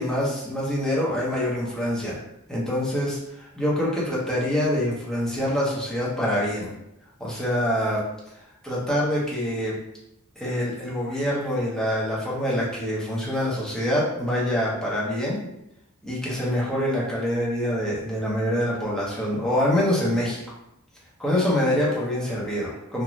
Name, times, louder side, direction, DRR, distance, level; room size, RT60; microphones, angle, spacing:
voice 1, 0.0-2.2 2.5-6.7 7.2-8.0 8.6-9.8 10.4-15.4 16.0-20.4 21.2-23.0, left 1 dB, ahead, -6 dB, 0.7 m, -25 dB
2.5 x 2.2 x 3.0 m, 0.82 s
head